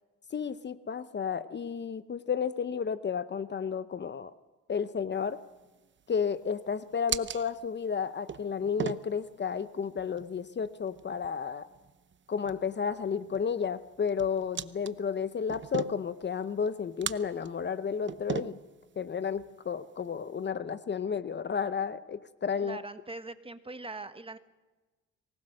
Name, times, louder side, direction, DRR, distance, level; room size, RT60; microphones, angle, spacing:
voice 1, 0.3-4.3 4.7-5.4 6.1-11.7 12.3-18.6 19.0-22.8, left 6 dB, 35° left, 14 dB, 0.8 m, -32 dB
sound 1, 5.1-20.5, right 8 dB, 40° right, 0.8 m, -42 dB
voice 2, 22.6-24.4, right 3 dB, 20° right, 10 dB, 1.3 m, -41 dB
24.5 x 19.5 x 6.5 m, 1.2 s
cardioid pair, 90°, 30 cm